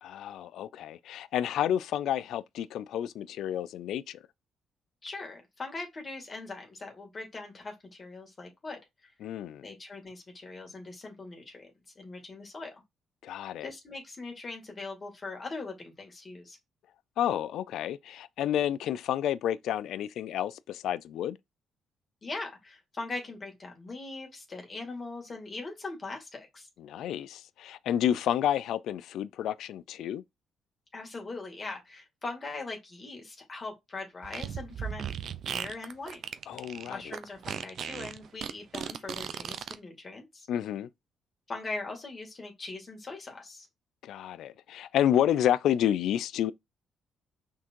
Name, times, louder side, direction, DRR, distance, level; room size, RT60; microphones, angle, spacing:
voice 1, 0.0-4.2 9.2-9.6 13.2-13.7 17.2-21.4 26.8-30.2 36.5-37.1 40.5-40.9 44.0-46.5, left 10 dB, 80° left, 0.4 m, -30 dB
voice 2, 5.0-9.1 9.6-11.7 12.0-12.8 13.6-16.6 22.2-26.7 30.9-35.1 35.5-36.2 36.9-40.5 41.5-43.7, left 3 dB, 35° left, 2.3 m, -41 dB
Fart, 34.2-39.8, right 8 dB, 65° right, 0.6 m, -37 dB
6.0 x 3.8 x 4.5 m
cardioid pair, 90°, 0 cm